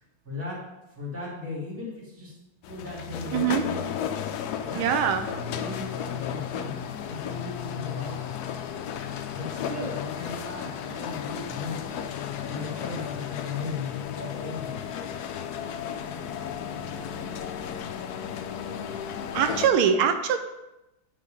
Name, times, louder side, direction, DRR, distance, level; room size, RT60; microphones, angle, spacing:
voice 1, 0.2-0.6 1.0-2.3 2.7-3.7 4.6-4.9 5.1-8.3 9.3-12.0 12.5-14.8, left 2 dB, 5° right, -5 dB, 2.3 m, -37 dB
sound 1, 2.6-19.7, left 8 dB, 85° left, 0.8 m, -34 dB
voice 2, 3.3-3.6 4.8-5.3 19.3-20.4, right 8 dB, 80° right, 8 dB, 1.5 m, -23 dB
9.1 x 3.6 x 5.3 m, 0.94 s
omnidirectional pair, 2.3 m